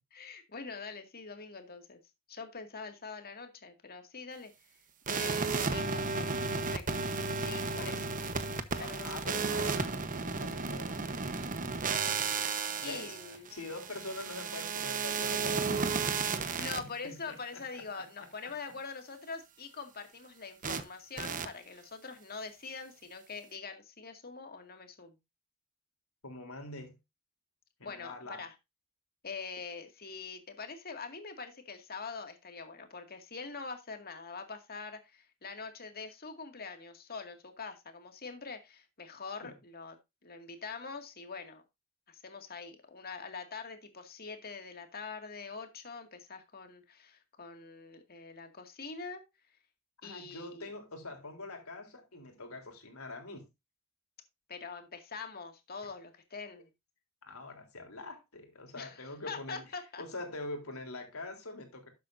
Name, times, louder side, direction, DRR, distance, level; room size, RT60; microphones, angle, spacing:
voice 1, 0.1-2.0 2.3-4.5 5.1-6.8 7.4-8.1 8.8-9.1 12.8-13.5 16.1-25.1 27.8-28.5 29.2-40.0 40.2-41.6 42.1-49.2 50.0-50.7 54.5-56.7 58.8-60.0, left 4 dB, 45° left, 2.2 m, -44 dB
sound 1, 5.1-16.8 20.6-20.8 21.2-21.5, right 4 dB, 40° right, 1.0 m, -33 dB
voice 2, 7.7-8.1 8.8-11.3 12.7-13.2 13.5-18.1 26.2-27.0 27.8-28.5 39.4-39.6 50.0-53.4 57.3-59.6 60.0-61.9, left 2 dB, 85° left, 3.6 m, -44 dB
12.5 x 8.3 x 2.6 m
head